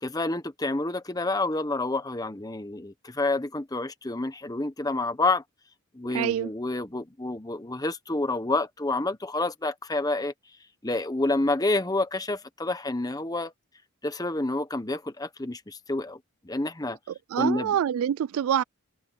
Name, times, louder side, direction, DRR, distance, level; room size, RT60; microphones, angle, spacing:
voice 1, 0.0-5.4 5.9-10.3 10.8-13.5 14.0-16.2 16.4-17.0 17.3-17.8, left 2 dB, 20° left, 1.0 m, -28 dB
voice 2, 6.0-6.5 17.3-18.6, right 9 dB, 85° right, 0.3 m, -26 dB
open air
head